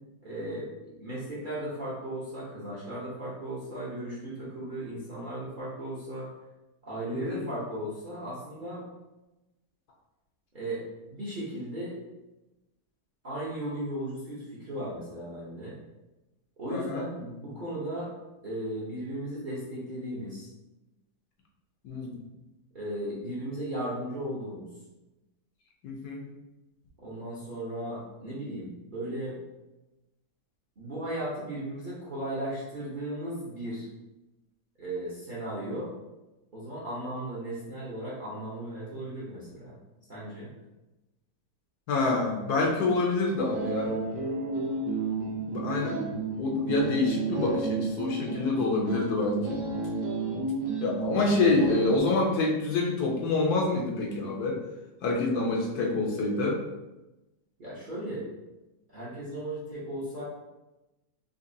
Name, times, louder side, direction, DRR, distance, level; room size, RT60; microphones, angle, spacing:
voice 1, 0.2-0.7 1.0-6.3 6.8-8.8 10.5-10.8 11.1-12.0 13.2-15.8 16.6-18.1 18.4-20.5 22.7-24.7 27.0-29.4 30.8-33.9 34.8-35.9 36.5-39.7 40.1-40.5 57.6-58.3 58.9-60.2, right 1 dB, 40° right, -8 dB, 0.7 m, -36 dB
voice 2, 16.7-17.0 21.8-22.2 25.8-26.3 41.9-44.0 45.4-46.0 46.4-49.6 50.8-54.6 55.0-56.6, left 3 dB, 70° left, -1 dB, 1.2 m, -27 dB
sound 1, 43.4-52.0, right 3 dB, 90° right, 1.2 m, -32 dB
3.9 x 2.8 x 2.6 m, 1.0 s
omnidirectional pair, 1.8 m